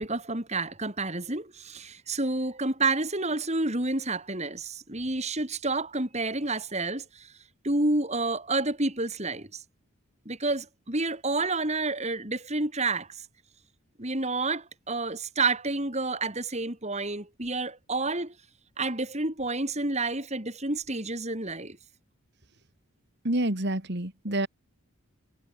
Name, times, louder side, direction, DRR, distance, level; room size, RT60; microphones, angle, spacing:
voice 1, 0.0-7.3 7.6-9.6 10.3-13.2 14.0-18.3 18.8-21.8, right 3 dB, 30° right, 4.4 m, -29 dB
voice 2, 23.2-24.5, right 1 dB, 55° right, 3.1 m, -28 dB
head